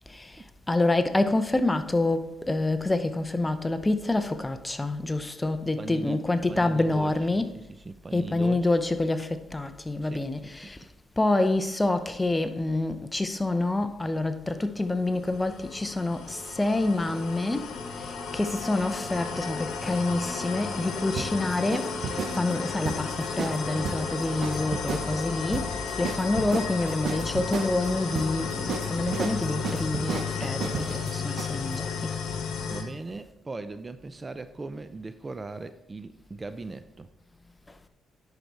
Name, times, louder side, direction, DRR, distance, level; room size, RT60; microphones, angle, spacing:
voice 1, 0.7-7.5 8.1-10.8 11.2-17.7 18.3-32.1, left 2 dB, 15° left, 0.6 m, -27 dB
voice 2, 5.8-6.2 6.5-7.1 7.5-8.7 10.0-10.2 10.6-10.7 32.6-37.1, right 3 dB, 25° right, 0.4 m, -39 dB
sound 1, 14.8-32.8, left 5 dB, 75° left, 1.2 m, -33 dB
sound 2, 19.8-31.8, right 6 dB, 60° right, 0.9 m, -35 dB
10.5 x 4.8 x 4.1 m
cardioid pair, 90°, 0 cm